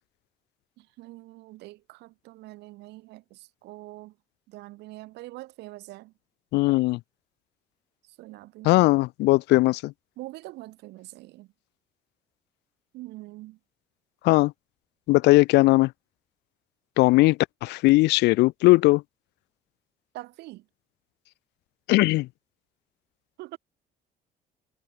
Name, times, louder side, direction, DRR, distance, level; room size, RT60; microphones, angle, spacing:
voice 1, 0.8-4.1 4.5-6.1 8.0-8.9 10.2-11.5 12.9-13.6 20.1-20.7 23.4-23.6, right 19 dB, 85° right, 6.7 m, -44 dB
voice 2, 6.5-7.0 8.6-9.9 14.2-14.5 15.1-15.9 17.0-19.0 21.9-22.3, left 20 dB, 90° left, 2.4 m, -19 dB
cardioid pair, 110°, 17 cm